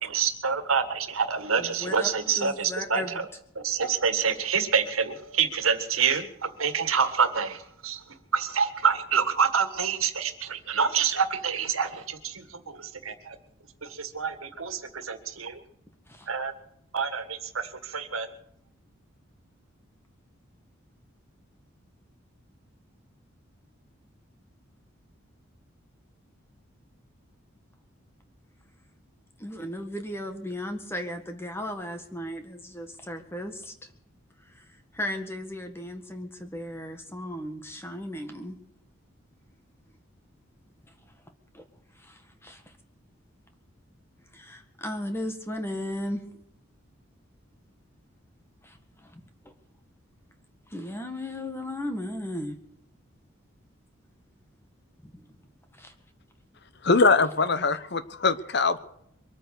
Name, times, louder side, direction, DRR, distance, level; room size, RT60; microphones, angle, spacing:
voice 1, 0.0-3.0 3.5-8.0 8.3-13.4 13.8-15.6 16.3-16.5 16.9-18.3, right 6 dB, 85° right, 9 dB, 1.8 m, -27 dB
voice 2, 1.6-3.2 16.1-16.3 29.4-33.7 34.5-34.6 34.9-38.6 41.5-41.6 42.0-42.6 44.3-46.2 48.6-49.5 50.7-52.6 55.0-55.1 55.8-55.9, left 1 dB, 10° left, 5 dB, 1.7 m, -36 dB
voice 3, 56.8-58.8, left 4 dB, 55° left, 13 dB, 0.9 m, -22 dB
23.5 x 9.3 x 6.5 m, 0.71 s
head